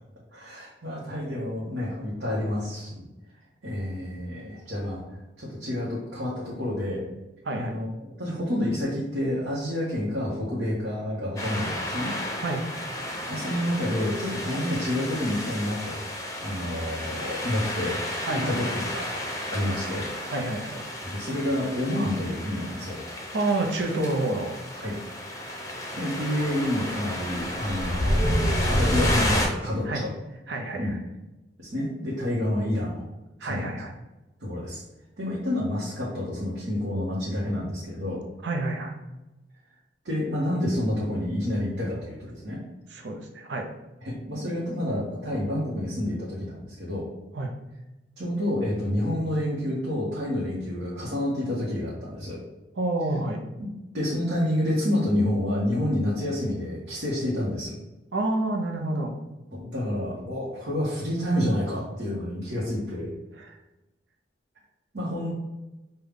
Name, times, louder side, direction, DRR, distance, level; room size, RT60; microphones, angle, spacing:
voice 1, 0.3-3.0 3.6-5.0 5.4-7.0 7.5-12.1 13.3-16.0 16.4-18.0 18.4-20.1 21.0-23.0 24.7-24.9 26.0-30.1 30.8-30.9 31.6-33.0 33.4-33.8 34.4-34.8 35.2-38.2 40.0-42.6 44.0-47.0 48.2-52.4 53.6-53.7 53.9-57.8 59.5-63.1 64.9-65.3, left 1 dB, 65° right, -7 dB, 1.1 m, -29 dB
voice 2, 7.4-7.8 12.4-12.7 18.3-18.8 20.3-20.8 23.3-24.5 29.9-30.0 30.5-31.0 33.4-33.9 38.4-39.0 42.9-43.7 47.3-47.5 52.8-53.4 58.1-59.1 63.4-63.6, right 2 dB, 85° right, 2 dB, 0.6 m, -28 dB
sound 1, 11.4-29.5, equal, 20° left, 0.7 m, -31 dB
5.4 x 2.3 x 3.5 m, 1.0 s
head